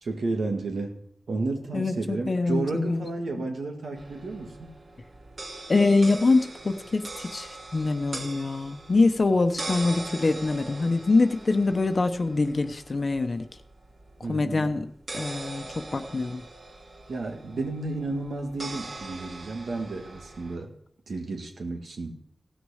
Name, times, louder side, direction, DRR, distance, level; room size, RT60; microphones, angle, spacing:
voice 1, 0.0-1.0 1.3-4.7 14.2-14.8 17.1-20.7 21.1-22.2, right 3 dB, 85° right, 3 dB, 2.1 m, -32 dB
voice 2, 1.7-3.0 3.4-3.5 5.7-13.5 14.2-16.4, left 3 dB, 55° left, 7 dB, 0.9 m, -24 dB
sound 1, 4.0-20.6, right 2 dB, 65° right, 2.6 m, -42 dB
16.5 x 6.4 x 6.5 m, 0.67 s
cardioid pair, 50°, 0 cm